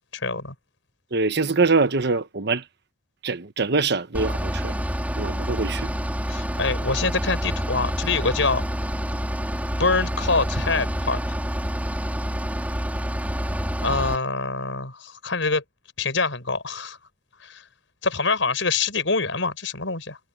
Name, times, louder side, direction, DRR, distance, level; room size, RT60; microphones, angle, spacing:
voice 1, 0.1-0.5 6.3-8.6 9.8-11.2 13.8-15.6 16.0-17.0 17.4-17.7 18.0-20.2, left 4 dB, 80° left, 5.6 m, -25 dB
voice 2, 1.1-2.6 3.2-4.8 5.2-5.9 13.8-14.0, right 3 dB, 60° right, 1.2 m, -24 dB
Bus / Idling, 4.1-14.2, equal, 10° right, 5.6 m, -27 dB
head